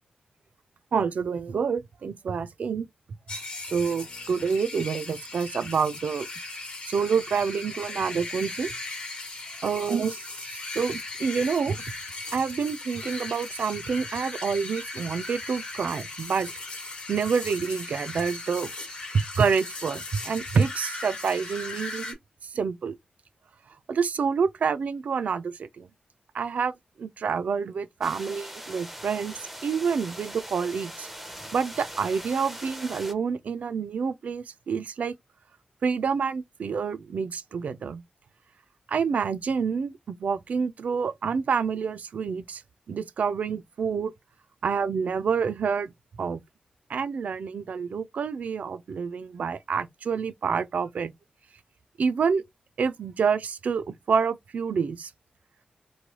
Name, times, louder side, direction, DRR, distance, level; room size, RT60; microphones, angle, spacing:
voice 1, 0.9-2.9 3.7-6.3 6.9-8.7 9.6-11.8 12.3-16.5 17.1-18.7 19.4-22.2 22.5-23.0 23.9-25.9 26.3-26.7 27.0-31.1 31.5-35.1 35.8-38.0 38.9-42.6 42.9-44.1 44.6-45.9 46.2-46.4 46.9-51.1 52.0-52.4 52.8-55.1, right 6 dB, 65° right, 0.4 m, -28 dB
sound 1, 3.3-22.1, left 2 dB, 45° left, 0.9 m, -38 dB
sound 2, 28.0-33.1, equal, 5° right, 0.5 m, -41 dB
3.1 x 2.2 x 2.9 m
wide cardioid pair, 140°, 3 cm